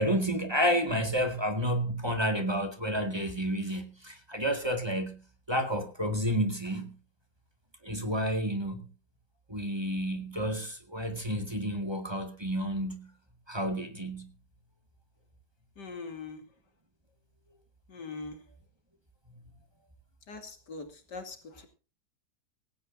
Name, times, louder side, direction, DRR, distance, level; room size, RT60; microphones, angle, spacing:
voice 1, 0.0-5.2 5.5-6.9 7.8-8.9 9.5-13.1 13.5-14.3, equal, 15° right, 2.0 m, -30 dB
voice 2, 15.8-16.4 17.9-18.4 20.3-21.7, left 4 dB, 90° left, 3.1 m, -42 dB
18.0 x 16.5 x 2.7 m
omnidirectional pair, 1.8 m